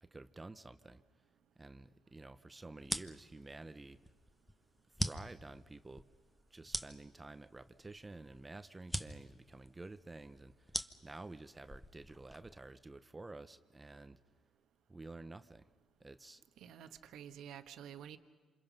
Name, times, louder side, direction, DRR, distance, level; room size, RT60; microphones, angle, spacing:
voice 1, 0.0-1.0 1.6-4.0 5.0-6.0 6.5-14.2 14.9-15.7 16.0-16.4, right 2 dB, 20° right, 11 dB, 0.9 m, -51 dB
sound 1, 2.8-12.7, equal, 5° left, 1.1 m, -44 dB
voice 2, 16.6-18.2, right 9 dB, 80° right, 9 dB, 1.3 m, -50 dB
27.5 x 27.5 x 5.4 m, 1.5 s
cardioid pair, 90°, 0 cm